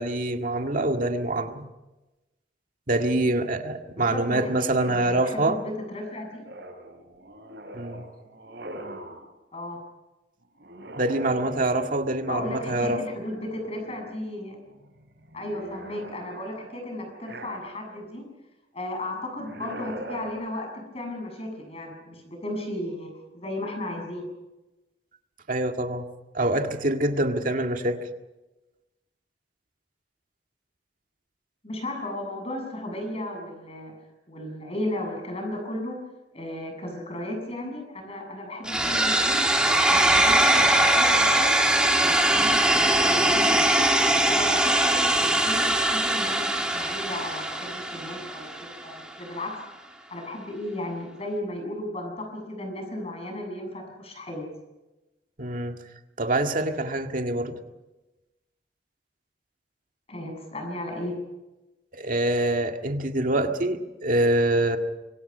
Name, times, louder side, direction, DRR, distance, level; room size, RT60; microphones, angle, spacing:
voice 1, 0.0-1.6 2.9-5.6 7.7-8.0 11.0-13.0 25.5-26.1 26.3-28.0 55.4-55.8 56.2-57.6 61.9-64.8, right 1 dB, 50° right, 4 dB, 2.0 m, -25 dB
voice 2, 4.0-6.5 9.5-9.8 12.3-14.6 15.3-18.3 18.7-24.2 31.6-33.9 34.3-36.0 36.3-39.4 39.9-41.5 42.0-43.8 44.3-49.5 50.1-54.5 60.1-61.2, left 1 dB, 35° left, 3 dB, 7.3 m, -35 dB
sound 1, 6.4-9.3 10.6-12.2 13.1-14.1 14.5-18.0 19.3-20.3, right 1 dB, 75° right, 5.4 m, -42 dB
sound 2, 38.7-48.6, right 1 dB, 5° right, 2.9 m, -21 dB
26.0 x 24.0 x 5.6 m, 1.0 s
head